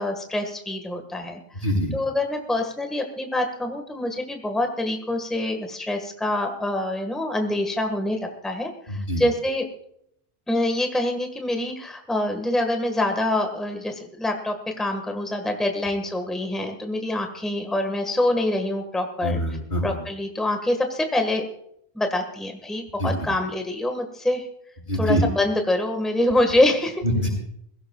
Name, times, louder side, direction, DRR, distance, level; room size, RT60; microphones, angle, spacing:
voice 1, 0.0-1.4 1.9-9.6 10.5-19.4 19.8-21.4 21.9-24.5 25.0-27.0, left 1 dB, ahead, 4 dB, 1.5 m, -25 dB
voice 2, 8.9-9.2 19.2-20.0 23.0-23.1 24.9-25.2 27.0-27.3, equal, 55° left, -5 dB, 6.9 m, -24 dB
22.0 x 16.5 x 2.3 m, 0.71 s
omnidirectional pair, 1.1 m